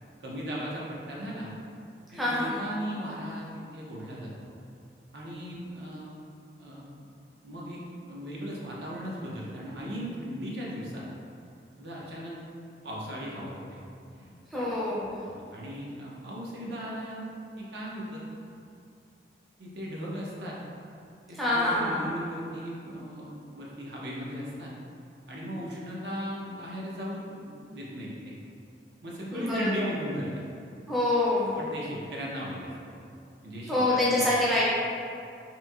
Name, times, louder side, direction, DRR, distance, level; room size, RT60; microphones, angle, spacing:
voice 1, 0.2-1.5 2.1-4.5 5.1-6.2 6.6-6.9 7.4-7.8 8.1-11.1 11.4-11.5 11.8-12.3 12.8-13.8 14.1-14.7 15.2-17.2 17.6-18.6 19.6-20.6 21.0-24.7 25.3-28.4 29.0-30.4 31.6-33.1 33.4-34.3, equal, 75° right, -5 dB, 0.5 m, -37 dB
voice 2, 2.1-2.5 14.5-15.2 21.4-22.0 29.3-29.9 30.9-31.6 33.7-34.7, left 1 dB, ahead, -8 dB, 0.4 m, -26 dB
2.9 x 2.6 x 2.3 m, 2.5 s
head